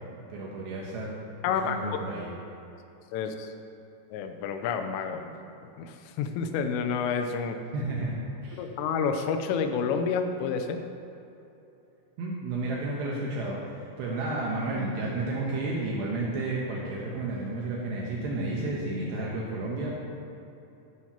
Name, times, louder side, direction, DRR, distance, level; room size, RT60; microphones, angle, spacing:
voice 1, 0.3-1.2 1.5-2.3 7.7-8.6 12.2-19.9, right 2 dB, 75° right, -4 dB, 2.8 m, -32 dB
voice 2, 1.4-1.8 3.1-3.5 4.1-5.3 5.8-7.6 8.6-10.8, left 6 dB, 85° left, 6 dB, 3.2 m, -29 dB
12.0 x 10.5 x 2.9 m, 2.9 s
omnidirectional pair, 5.8 m